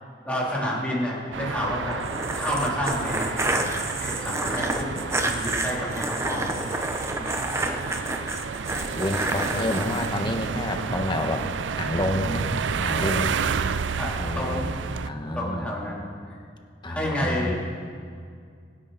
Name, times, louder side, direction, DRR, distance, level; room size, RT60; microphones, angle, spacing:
voice 1, 0.2-3.6 4.0-6.7 7.2-7.5 14.0-14.7 15.3-16.1 16.9-17.6, equal, 5° left, -6 dB, 3.3 m, -30 dB
sound 1, 1.3-15.1, right 6 dB, 85° right, 0.5 m, -31 dB
sound 2, 1.9-10.1, right 2 dB, 15° right, 1.0 m, -29 dB
voice 2, 8.9-11.4 11.8-12.5 12.8-13.4 14.2-14.7 15.0-15.7 16.8-17.5, left 1 dB, 25° left, 4 dB, 1.3 m, -28 dB
25.0 x 10.5 x 4.2 m, 2.2 s
head